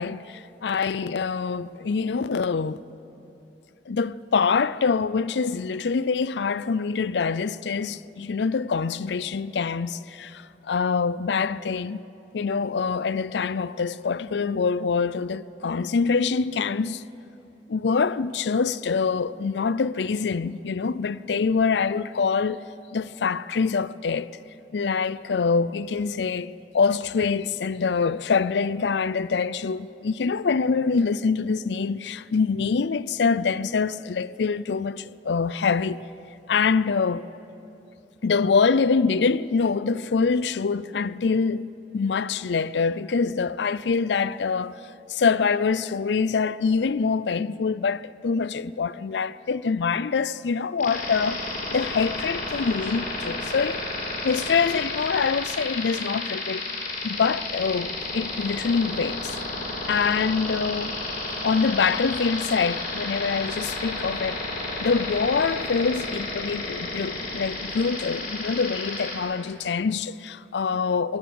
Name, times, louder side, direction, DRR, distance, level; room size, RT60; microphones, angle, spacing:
voice 1, 0.0-2.8 3.9-12.0 12.3-17.0 17.7-22.6 22.9-24.3 24.7-36.0 36.5-37.3 38.2-41.6 41.9-44.8 45.1-51.4 51.7-53.8 54.2-56.6 57.0-59.4 59.9-60.9 61.4-64.5 64.8-71.2, left 5 dB, 70° left, 0.5 m, -25 dB
sound 1, 50.8-69.2, left 2 dB, 50° left, 4.3 m, -32 dB
21.5 x 17.0 x 7.7 m
head